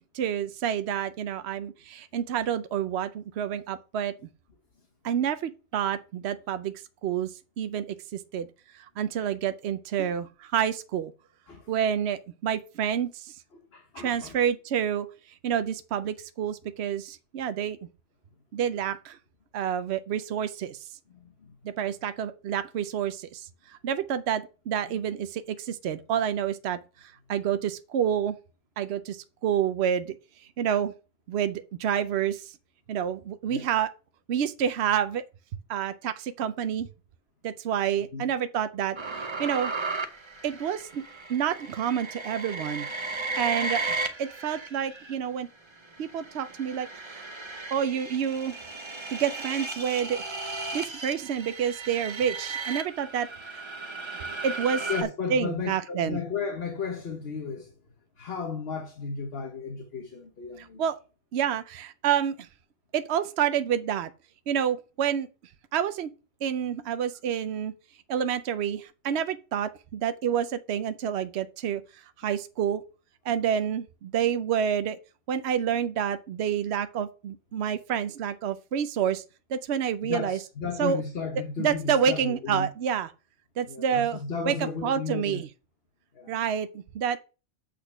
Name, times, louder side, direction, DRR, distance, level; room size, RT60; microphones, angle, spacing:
voice 1, 0.1-4.1 5.0-6.7 7.0-7.3 7.6-7.8 8.1-8.5 8.7-10.3 10.5-11.1 11.7-13.4 14.0-15.1 15.4-17.8 18.5-19.2 19.5-20.8 21.6-28.4 28.8-30.2 30.6-30.9 31.3-32.6 32.9-33.9 34.3-35.2 35.7-36.9 37.4-39.7 40.4-41.0 41.3-42.9 43.4-45.5 46.0-47.3 47.7-48.6 49.1-50.2 50.7-53.6 54.4-54.9 55.3-56.2 60.6-61.0 61.3-62.5 62.9-64.1 64.5-65.3 65.7-66.1 66.4-67.7 68.1-71.8 72.2-72.8 73.2-75.0 75.3-79.2 79.5-80.4 80.8-81.0 81.6-83.1 83.6-84.2 84.4-85.5 86.3-86.7 86.9-87.2, right 8 dB, 75° right, 0.9 m, -28 dB
voice 2, 13.7-14.4 21.1-21.6 24.9-25.0 33.5-33.7 38.1-38.2 54.9-57.7 58.2-60.8 80.0-82.7 83.7-85.4 86.1-86.3, left 5 dB, 65° left, 1.4 m, -34 dB
sound 1, 39.0-45.1 45.8-55.0, right 3 dB, 30° right, 0.8 m, -35 dB
8.3 x 4.3 x 5.9 m
omnidirectional pair, 1.1 m